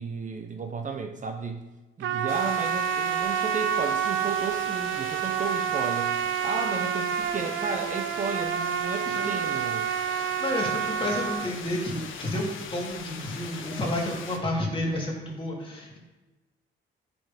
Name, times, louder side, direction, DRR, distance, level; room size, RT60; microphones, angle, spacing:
voice 1, 0.0-1.6 2.0-6.2 6.4-9.9, right 4 dB, 40° right, 5 dB, 0.8 m, -33 dB
Trumpet, 2.0-11.5, right 9 dB, 75° right, 0.5 m, -28 dB
sound 1, 2.3-14.4, left 6 dB, 80° left, 0.9 m, -41 dB
voice 2, 10.1-16.0, left 1 dB, 25° left, -3 dB, 2.8 m, -31 dB
9.2 x 5.3 x 5.1 m, 1.1 s
cardioid pair, 90°, 20 cm